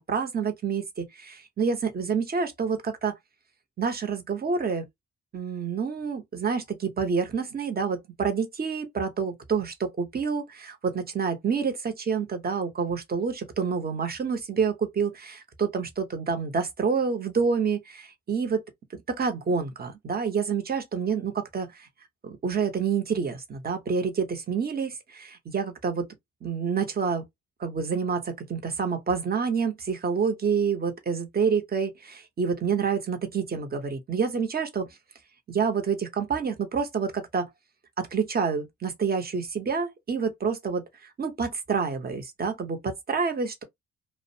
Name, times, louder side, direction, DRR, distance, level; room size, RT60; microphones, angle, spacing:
voice 1, 0.0-3.1 3.8-4.9 5.3-18.6 19.1-21.7 22.2-26.1 26.4-27.2 27.6-34.9 35.5-37.5 38.0-40.8 41.2-43.6, right 5 dB, 30° right, 0.8 m, -28 dB
2.4 x 2.1 x 2.6 m
cardioid pair, 90°, 30 cm